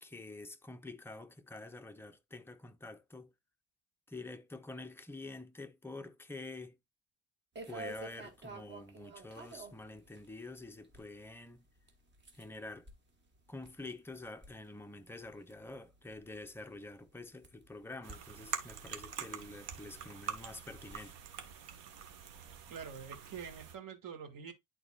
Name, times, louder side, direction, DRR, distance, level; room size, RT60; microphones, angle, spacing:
voice 1, 0.0-3.3 4.1-6.8 7.7-11.6 12.3-12.9 13.5-21.2, left 2 dB, 5° left, 0.4 m, -47 dB
sound 1, 7.6-21.1, right 2 dB, 25° right, 1.2 m, -53 dB
sound 2, 18.0-23.7, right 8 dB, 70° right, 1.5 m, -45 dB
voice 2, 22.7-24.5, right 7 dB, 45° right, 1.9 m, -46 dB
11.0 x 4.0 x 2.3 m
cardioid pair, 145°, 44 cm